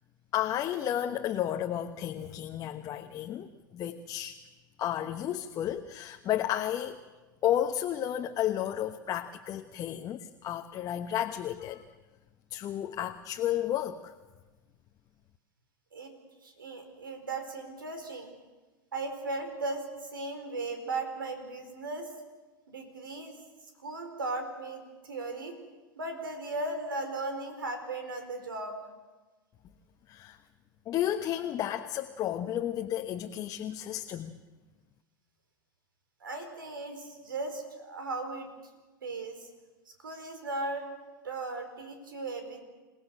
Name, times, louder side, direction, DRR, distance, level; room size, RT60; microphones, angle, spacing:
voice 1, 0.3-4.4 4.8-7.0 7.4-11.8 12.5-14.1 30.1-30.4 30.9-34.4, left 11 dB, 35° left, 5 dB, 1.2 m, -32 dB
voice 2, 16.4-18.3 18.9-22.1 22.7-23.4 23.8-25.5 26.0-28.8 36.2-38.5 39.0-39.5 40.0-40.9 41.2-42.6, right 2 dB, 80° right, 6 dB, 4.7 m, -37 dB
27.5 x 18.0 x 7.7 m, 1.2 s
hypercardioid pair, 95°, 11 cm